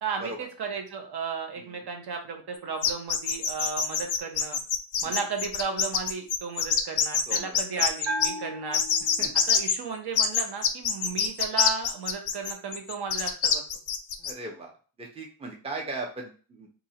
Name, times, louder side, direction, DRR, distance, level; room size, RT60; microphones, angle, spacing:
voice 1, 0.0-4.6 5.0-8.8 9.5-13.6, right 5 dB, 55° right, 4 dB, 0.9 m, -34 dB
sound 1, 2.8-8.3 8.7-9.8 10.2-14.3, left 7 dB, 45° left, 0.5 m, -25 dB
voice 2, 7.3-7.6 9.2-9.3 14.2-14.7 15.0-16.7, right 2 dB, 15° right, 1 dB, 0.6 m, -38 dB
Bell, 8.0-9.7, right 1 dB, 80° right, 2.0 m, -35 dB
2.8 x 2.6 x 4.2 m, 0.38 s
wide cardioid pair, 150°, 45 cm